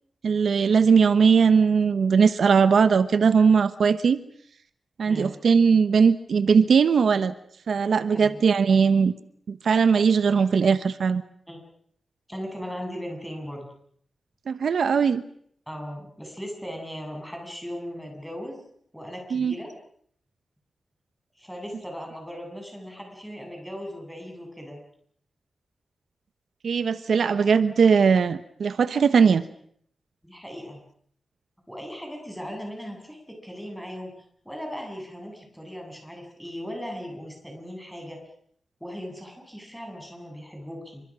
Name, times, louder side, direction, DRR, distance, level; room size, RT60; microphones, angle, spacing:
voice 1, 0.2-4.2 5.0-7.3 7.7-9.1 9.5-11.2 14.5-15.2 19.3-19.5 26.6-29.4, right 6 dB, 80° right, 12 dB, 1.1 m, -19 dB
voice 2, 12.3-13.7 15.7-18.6 18.9-19.7 21.3-24.8 30.2-30.8 31.7-34.1 34.4-38.2 38.8-41.0, equal, ahead, 2 dB, 8.0 m, -38 dB
28.5 x 25.5 x 6.3 m, 0.64 s
wide cardioid pair, 140°, 0 cm